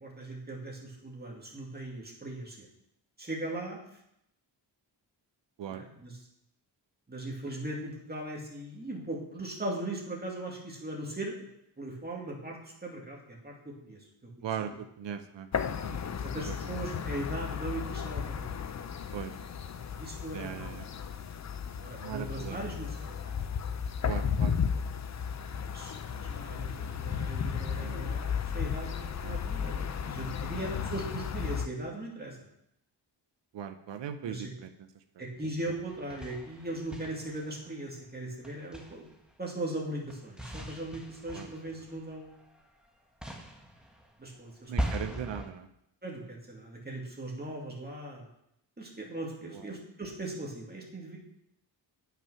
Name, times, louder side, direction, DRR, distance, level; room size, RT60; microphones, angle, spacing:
voice 1, 0.0-2.7 3.2-3.8 5.7-6.1 7.1-11.5 11.8-14.5 16.2-18.6 20.0-20.8 21.8-23.3 25.5-32.4 34.2-34.5 35.2-39.1 39.4-42.4 44.2-44.7 45.0-45.2 46.0-48.3 48.8-51.2, right 1 dB, 20° right, -2 dB, 2.4 m, -39 dB
voice 2, 14.4-16.0 16.3-16.6 19.1-19.4 20.3-20.9 22.0-22.6 24.0-24.6 27.8-28.0 29.2-29.4 33.5-34.7 41.3-41.5 44.7-45.7 49.5-49.7, right 8 dB, 70° right, 8 dB, 0.8 m, -39 dB
sound 1, 15.5-31.7, left 7 dB, 40° left, 0.5 m, -34 dB
sound 2, 35.9-37.8 38.4-39.3 40.1-42.8 43.2-45.5, equal, ahead, 1.4 m, -39 dB
9.0 x 6.0 x 5.7 m, 0.79 s
wide cardioid pair, 100°, 45 cm